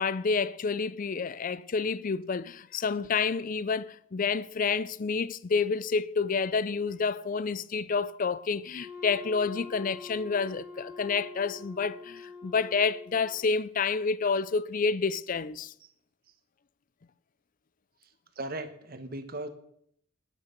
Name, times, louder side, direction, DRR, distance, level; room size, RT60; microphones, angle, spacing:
voice 1, 0.0-15.7, left 5 dB, 40° left, 0.4 m, -29 dB
Wind instrument woodwind instrument, 8.7-13.5, left 4 dB, 10° right, 2.7 m, -45 dB
voice 2, 18.4-19.5, right 2 dB, 45° right, 1.3 m, -37 dB
12.5 x 9.7 x 5.3 m
head